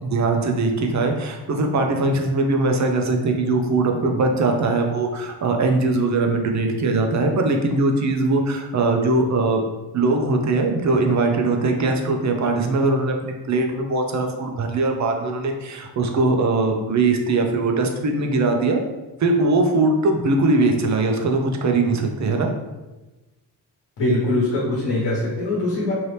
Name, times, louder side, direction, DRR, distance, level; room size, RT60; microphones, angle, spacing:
voice 1, 0.0-9.6 9.9-18.8 19.2-22.5, right 3 dB, 40° right, 3 dB, 0.5 m, -21 dB
voice 2, 24.0-25.9, left 2 dB, 75° left, -6 dB, 1.1 m, -22 dB
2.8 x 2.7 x 3.2 m, 1.1 s
cardioid pair, 100°, 43 cm